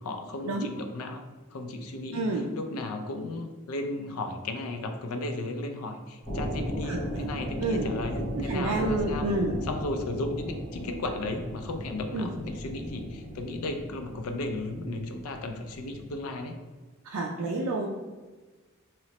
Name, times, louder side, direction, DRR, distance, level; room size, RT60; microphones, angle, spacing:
voice 1, 0.0-1.2 1.5-2.2 2.5-9.3 9.7-16.6, left 2 dB, 80° left, 5 dB, 0.4 m, -35 dB
voice 2, 2.1-2.5 6.8-7.3 7.6-7.9 8.3-9.6 12.1-12.3 17.0-17.9, right 2 dB, 80° right, -1 dB, 0.4 m, -29 dB
sound 1, 6.2-16.1, left 1 dB, 35° left, 1.3 m, -36 dB
3.0 x 3.0 x 2.9 m, 1.3 s
head